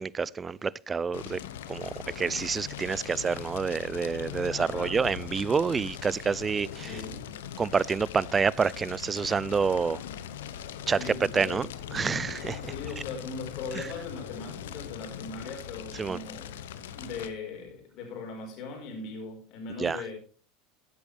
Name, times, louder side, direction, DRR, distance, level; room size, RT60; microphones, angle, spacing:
voice 1, 0.0-1.4 1.7-7.0 7.6-10.0 10.9-12.7 13.8-13.9 16.0-16.2 19.8-20.0, right 5 dB, 25° right, 0.4 m, -28 dB
Fire, 1.1-17.3, left 10 dB, 85° left, 0.9 m, -41 dB
voice 2, 4.5-5.0 6.8-7.3 10.9-11.7 12.6-16.5 16.9-20.2, left 4 dB, 60° left, 4.8 m, -39 dB
15.0 x 8.4 x 3.3 m
hypercardioid pair, 95°, 0 cm